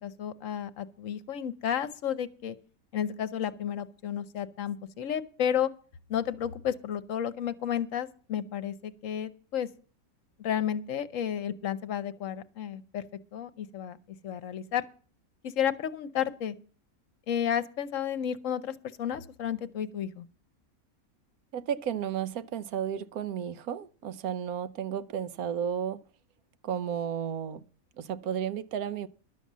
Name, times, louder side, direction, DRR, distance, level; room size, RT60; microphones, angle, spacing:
voice 1, 0.0-2.6 2.9-5.7 6.1-9.7 10.4-13.0 13.3-14.0 14.2-14.8 15.4-16.5 17.3-20.2, left 9 dB, 65° left, 1.1 m, -32 dB
voice 2, 21.5-26.0 26.6-27.6 28.0-29.1, right 8 dB, 85° right, 1.2 m, -33 dB
12.0 x 7.0 x 7.3 m
omnidirectional pair, 1.5 m